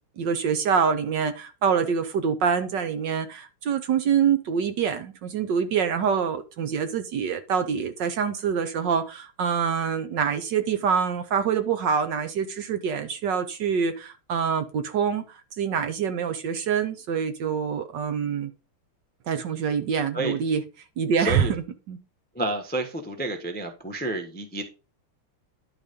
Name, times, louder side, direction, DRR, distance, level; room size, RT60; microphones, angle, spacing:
voice 1, 0.2-18.5 19.3-20.6 21.0-21.6 21.9-22.0, right 7 dB, 65° right, 1.3 m, -25 dB
voice 2, 21.2-21.5 22.3-24.6, right 1 dB, 10° left, 0.6 m, -29 dB
11.0 x 4.1 x 5.1 m
omnidirectional pair, 2.4 m